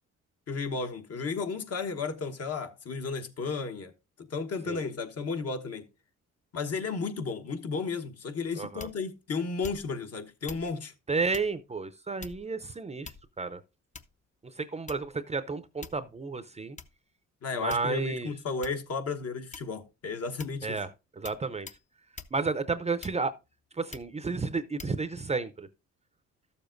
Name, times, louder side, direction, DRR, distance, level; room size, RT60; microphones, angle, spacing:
voice 1, 0.5-3.9 4.2-5.9 6.5-10.9 17.4-20.8, left 4 dB, 55° left, 1.2 m, -33 dB
voice 2, 8.6-8.9 11.1-13.6 14.4-16.8 17.5-18.3 20.6-20.9 21.2-21.7 22.3-23.3 23.7-25.7, right 4 dB, 20° right, 0.6 m, -32 dB
sound 1, 8.8-9.1 9.6-10.0 10.5-10.7 11.3-11.6 12.2-12.6 13.0-13.5 13.9-14.3 14.9-15.2 15.8-16.1 16.8-16.9 17.7-18.1 18.6-18.9 19.5-19.9 20.4-20.6 21.2-21.4 21.7-21.8 22.2-22.4 23.0-23.4 23.9-24.2 24.8-25.0, left 5 dB, 25° left, 0.6 m, -45 dB
13.0 x 7.0 x 2.5 m
cardioid pair, 90°, 30 cm